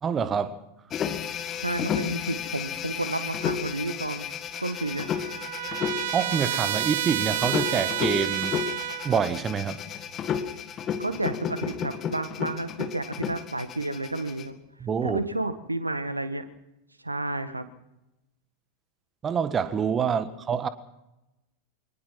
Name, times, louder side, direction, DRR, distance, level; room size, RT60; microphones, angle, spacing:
voice 1, 0.0-0.6 6.1-8.6 9.0-9.8 14.8-15.2 19.2-20.7, right 7 dB, 20° right, 1.5 m, -26 dB
sound 1, 0.9-14.5, left 8 dB, 30° left, 1.9 m, -32 dB
voice 2, 1.6-4.3 4.6-5.1 11.0-14.5 15.0-16.5 17.0-17.7, right 2 dB, 85° right, 1.8 m, -31 dB
Trumpet, 4.5-9.3, right 12 dB, 55° right, 0.9 m, -30 dB
24.0 x 19.0 x 6.0 m
figure-of-eight pair, 90°, 0 cm